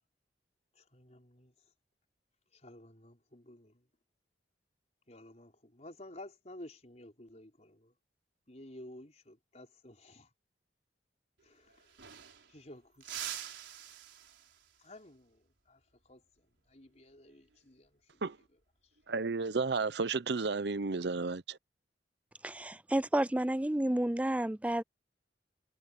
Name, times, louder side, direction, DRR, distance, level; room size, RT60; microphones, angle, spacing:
voice 1, 0.7-1.5 2.5-3.9 5.1-7.9 8.5-10.3 11.4-12.0 12.5-13.3 14.8-18.2, left 1 dB, 40° left, 4.6 m, -53 dB
sound 1, 11.4-11.5 11.7-12.6 13.0-14.8 17.3-17.6 19.0-19.4, right 11 dB, 85° right, 4.5 m, -45 dB
voice 2, 19.1-21.6, right 4 dB, 65° right, 0.7 m, -32 dB
voice 3, 22.4-24.8, right 1 dB, 10° right, 0.3 m, -30 dB
head